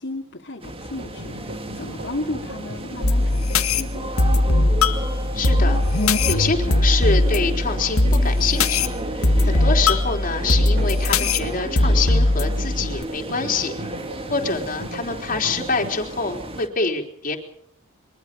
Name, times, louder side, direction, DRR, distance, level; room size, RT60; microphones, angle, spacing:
voice 1, 0.0-4.8, left 2 dB, 55° left, -2 dB, 3.0 m, -34 dB
sound 1, 0.6-16.7, right 1 dB, 25° right, 2.2 m, -34 dB
sound 2, 1.0-15.9, right 1 dB, 50° right, 3.9 m, -38 dB
sound 3, 3.0-13.0, left 2 dB, 85° left, 2.0 m, -20 dB
voice 2, 5.3-8.9 9.4-13.7 14.3-17.4, left 4 dB, 40° left, 2 dB, 4.0 m, -26 dB
24.0 x 23.0 x 5.5 m, 0.70 s
head